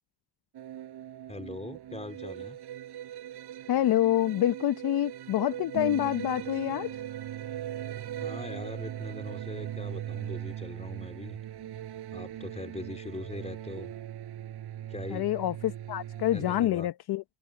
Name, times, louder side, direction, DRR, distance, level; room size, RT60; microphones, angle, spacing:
sound 1, 0.5-16.7, right 11 dB, 65° right, 7.0 m, -39 dB
voice 1, 1.3-2.6 8.2-11.4 12.1-13.9 14.9-15.3 16.3-16.9, left 2 dB, 15° left, 3.9 m, -41 dB
voice 2, 3.7-7.0 15.1-17.2, left 13 dB, 60° left, 1.0 m, -27 dB
supercardioid pair, 70°, 43 cm